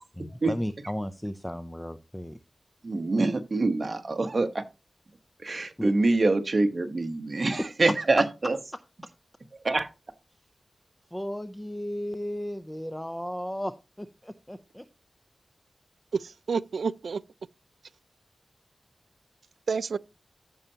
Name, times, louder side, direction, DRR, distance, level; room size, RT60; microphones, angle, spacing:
voice 1, 0.2-2.4 5.8-5.9 7.6-7.7 11.1-14.8, equal, 5° left, 0.5 m, -34 dB
voice 2, 2.8-4.6 5.4-8.6 9.6-9.9, right 2 dB, 45° right, 1.1 m, -25 dB
voice 3, 16.1-17.2 19.7-20.0, right 5 dB, 80° right, 0.3 m, -29 dB
14.0 x 5.5 x 2.8 m
wide cardioid pair, 90°, 0 cm